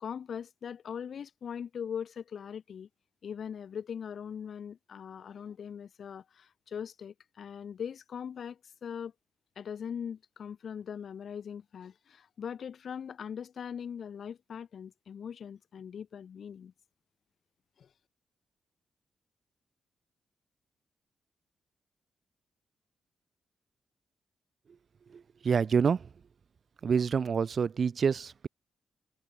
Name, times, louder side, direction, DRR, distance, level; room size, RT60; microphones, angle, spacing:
voice 1, 0.0-2.9 3.2-9.1 9.6-16.7 17.8-17.9, left 7 dB, 60° left, 0.4 m, -41 dB
voice 2, 25.1-26.1 26.8-28.5, right 6 dB, 50° right, 0.4 m, -27 dB
cardioid pair, 105°, 0 cm